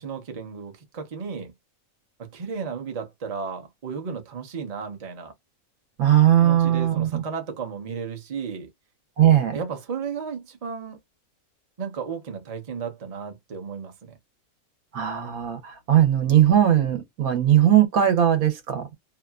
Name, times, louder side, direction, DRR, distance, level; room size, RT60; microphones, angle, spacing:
voice 1, 0.0-1.5 2.2-5.3 6.4-8.7 9.5-11.0 11.8-14.1, right 6 dB, 35° right, 0.6 m, -34 dB
voice 2, 6.0-7.2 9.2-9.6 14.9-18.9, right 11 dB, 80° right, 1.3 m, -19 dB
2.7 x 2.3 x 2.3 m
omnidirectional pair, 1.5 m